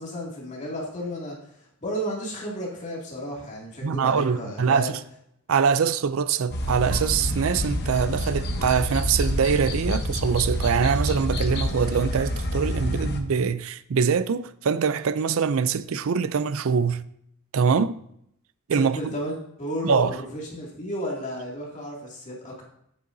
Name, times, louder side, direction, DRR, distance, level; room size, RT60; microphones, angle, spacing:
voice 1, 0.0-4.9 18.7-22.6, equal, 35° left, 2.4 m, -33 dB
voice 2, 3.8-4.9 5.5-17.0 17.5-18.0 18.7-19.1 19.8-20.1, right 6 dB, 70° right, 0.4 m, -23 dB
sound 1, 6.5-13.2, equal, 50° left, 1.0 m, -27 dB
9.5 x 8.5 x 2.7 m
head